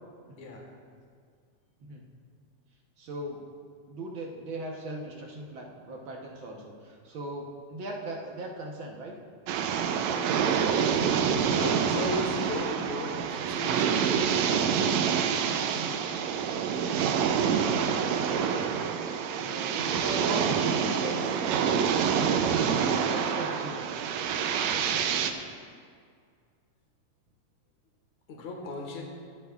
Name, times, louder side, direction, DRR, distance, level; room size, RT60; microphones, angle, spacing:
voice 1, 0.4-0.7 11.5-14.3 28.3-29.0, left 2 dB, 75° left, 0 dB, 2.8 m, -36 dB
voice 2, 3.0-3.4 3.9-9.1 15.7-16.0 17.7-18.5 19.4-23.9 24.5-25.0, right 1 dB, 60° right, -1 dB, 1.5 m, -39 dB
sound 1, 9.5-25.3, right 7 dB, 75° right, 1.8 m, -27 dB
25.0 x 8.3 x 2.4 m, 2.1 s
omnidirectional pair, 3.3 m